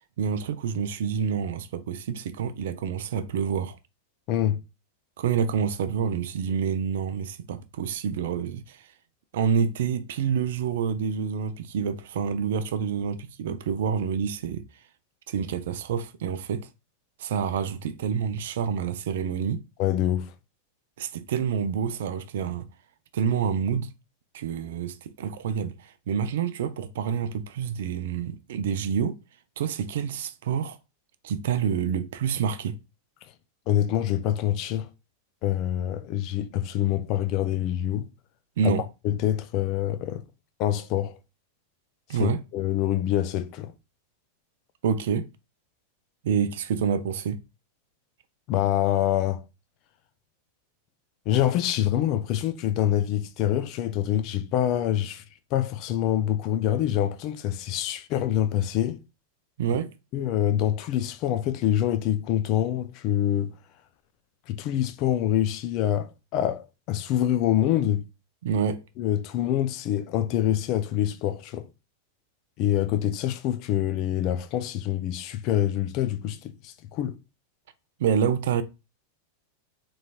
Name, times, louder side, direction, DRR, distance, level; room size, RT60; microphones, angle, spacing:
voice 1, 0.2-3.8 5.2-8.9 9.3-14.6 15.3-16.7 17.2-19.6 21.0-22.7 23.1-23.9 24.3-29.2 29.6-30.8 31.2-32.8 38.6-38.9 42.1-42.4 44.8-45.3 46.2-47.4 59.6-59.9 68.4-68.8 78.0-78.6, right 7 dB, 55° right, 0.4 m, -27 dB
voice 2, 4.3-4.6 19.8-20.3 33.7-34.9 35.4-38.1 38.6-38.7 39.0-40.2 40.6-41.2 42.1-43.7 48.5-49.4 51.3-55.2 55.5-59.0 60.1-63.5 64.5-68.0 69.0-71.7 72.6-77.2, left 12 dB, 40° left, 0.4 m, -25 dB
3.9 x 3.1 x 2.3 m
figure-of-eight pair, 90°, 0 cm